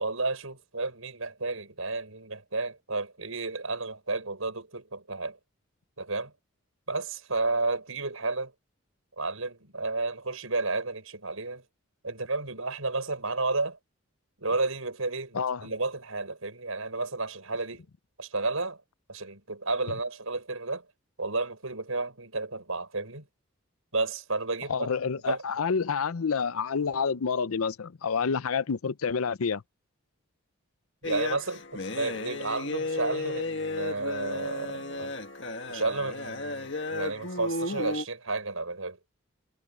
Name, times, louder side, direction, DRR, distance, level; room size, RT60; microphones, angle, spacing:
voice 1, 0.0-5.4 6.0-6.3 6.9-8.5 9.2-11.6 12.0-13.8 14.4-17.8 18.2-18.8 19.1-20.8 21.2-23.2 23.9-24.9 25.2-25.4 31.0-35.1 35.7-39.0, right 3 dB, 80° right, 5.9 m, -32 dB
voice 2, 15.3-15.7 24.7-29.6, left 5 dB, 85° left, 0.6 m, -28 dB
sound 1, 31.0-38.0, left 2 dB, 55° left, 1.8 m, -34 dB
head